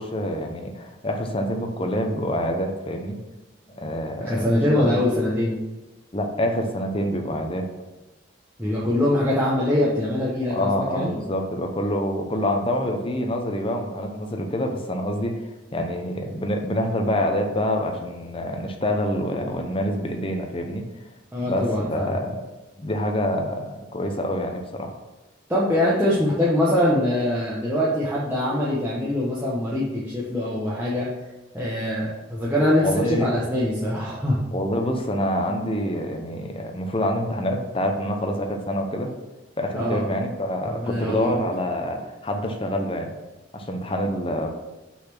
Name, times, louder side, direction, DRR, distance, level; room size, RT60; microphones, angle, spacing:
voice 1, 0.0-3.2 3.7-4.5 4.7-5.0 6.1-7.7 10.5-20.8 21.4-22.4 22.8-25.0 32.8-33.3 34.5-39.1 39.6-43.1 43.5-44.5, left 1 dB, 30° left, 3 dB, 0.8 m, -26 dB
voice 2, 4.2-5.6 8.6-11.2 21.3-22.1 25.5-31.1 31.5-34.5 39.7-40.0 40.7-41.3, left 1 dB, 10° right, -8 dB, 1.0 m, -23 dB
5.9 x 4.2 x 6.0 m, 1.1 s
head